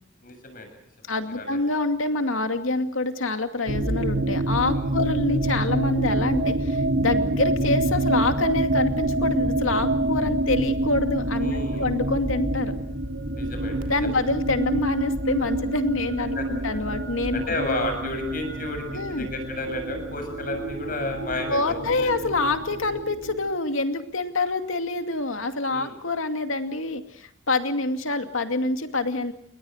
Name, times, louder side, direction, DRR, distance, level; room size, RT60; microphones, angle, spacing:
voice 1, 0.2-0.7 1.0-1.6 4.7-4.9 11.4-11.9 13.3-14.2 16.4-16.5 17.3-21.7 22.0-22.1 25.7-26.0, left 2 dB, 45° left, 6 dB, 7.2 m, -32 dB
voice 2, 1.1-12.8 13.9-17.4 18.9-19.3 21.5-29.3, left 2 dB, 85° left, 7 dB, 2.5 m, -26 dB
sound 1, 3.7-23.5, right 1 dB, 70° right, 3.4 m, -27 dB
29.0 x 22.0 x 6.5 m, 0.68 s
head